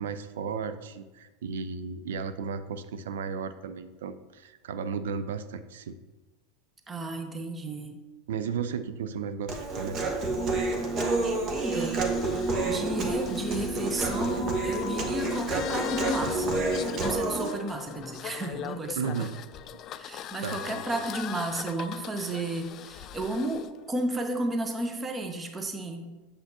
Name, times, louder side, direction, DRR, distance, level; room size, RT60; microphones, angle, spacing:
voice 1, 0.0-5.9 8.3-10.0 19.0-19.3 20.4-20.8, right 6 dB, 70° right, 12 dB, 0.4 m, -34 dB
voice 2, 6.9-8.0 11.5-12.1 12.6-16.6 17.0-19.3 20.0-26.1, right 2 dB, 20° right, 5 dB, 0.9 m, -33 dB
Human voice, 9.5-17.5, right 2 dB, 40° right, 1.1 m, -29 dB
sound 1, 10.0-23.7, left 11 dB, 40° left, 0.3 m, -41 dB
7.8 x 6.8 x 2.8 m, 1.2 s
figure-of-eight pair, 85°, 0 cm